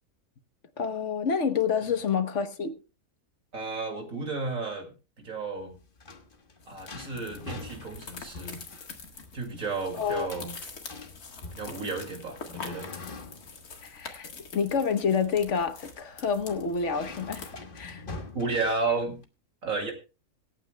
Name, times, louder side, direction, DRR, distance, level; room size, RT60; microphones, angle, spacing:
voice 1, 0.8-2.7 9.9-10.3 13.8-17.5 17.7-18.0, left 6 dB, 55° left, 1.3 m, -28 dB
voice 2, 3.5-5.8 6.7-8.6 9.3-10.5 11.6-12.9 18.3-19.2 19.6-19.9, right 3 dB, 65° right, 2.8 m, -32 dB
sound 1, 5.6-19.2, left 3 dB, 40° left, 1.4 m, -45 dB
sound 2, 6.6-17.5, left 4 dB, 90° left, 2.2 m, -45 dB
25.0 x 9.0 x 2.2 m
omnidirectional pair, 1.5 m